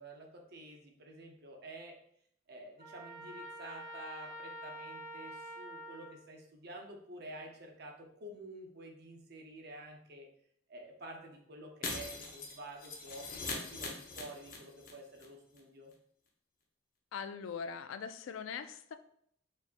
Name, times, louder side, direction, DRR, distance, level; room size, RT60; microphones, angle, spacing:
voice 1, 0.0-2.0 2.5-10.3 10.7-15.9, right 1 dB, 55° right, 2 dB, 0.7 m, -50 dB
Trumpet, 2.8-6.2, equal, 40° right, 1.4 m, -47 dB
Shatter, 11.8-14.9 15.2-15.3 15.6-15.7, left 3 dB, 45° left, 0.7 m, -41 dB
voice 2, 17.1-19.0, left 6 dB, 80° left, 10 dB, 0.3 m, -41 dB
4.1 x 3.5 x 2.5 m, 0.67 s
head